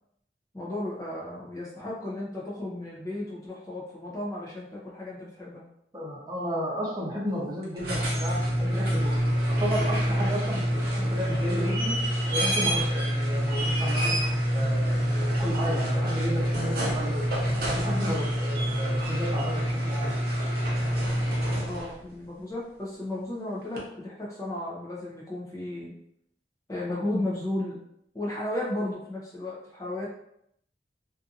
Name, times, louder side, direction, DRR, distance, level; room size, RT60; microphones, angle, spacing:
voice 1, 0.5-5.6 21.7-25.9 26.7-27.8 28.1-30.1, left 1 dB, 20° left, -5 dB, 0.5 m, -34 dB
voice 2, 5.9-9.2 9.5-12.0 12.3-14.1 14.5-17.3 17.7-20.2, equal, 20° right, -5 dB, 0.7 m, -33 dB
sound 1, 7.6-22.0 23.8-23.9, equal, 60° right, 0.7 m, -26 dB
2.6 x 2.5 x 2.5 m, 0.73 s
head